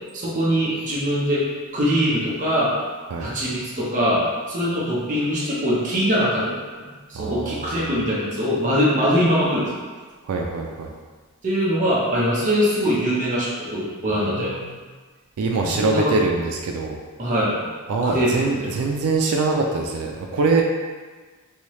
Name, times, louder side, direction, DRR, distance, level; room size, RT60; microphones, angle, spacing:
voice 1, 0.1-1.5 1.7-2.7 3.2-6.5 7.1-9.8 11.4-14.5 15.6-16.1 17.2-17.7 18.0-18.7, equal, 35° right, -7 dB, 0.7 m, -22 dB
voice 2, 7.1-7.9 10.3-10.9 14.4-14.8 15.4-17.0 17.9-20.6, right 3 dB, 85° right, 1 dB, 0.4 m, -23 dB
3.2 x 2.7 x 3.0 m, 1.4 s
head